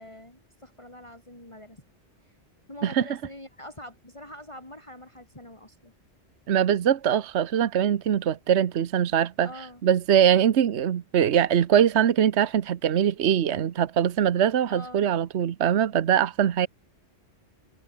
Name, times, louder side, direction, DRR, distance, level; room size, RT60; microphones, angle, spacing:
voice 1, 0.0-1.8 2.2-2.3 2.7-5.9 9.4-9.8 14.7-15.1, left 1 dB, 25° left, 3.7 m, -44 dB
voice 2, 6.5-9.5 9.8-16.7, right 9 dB, 70° right, 1.2 m, -22 dB
omnidirectional pair, 1.2 m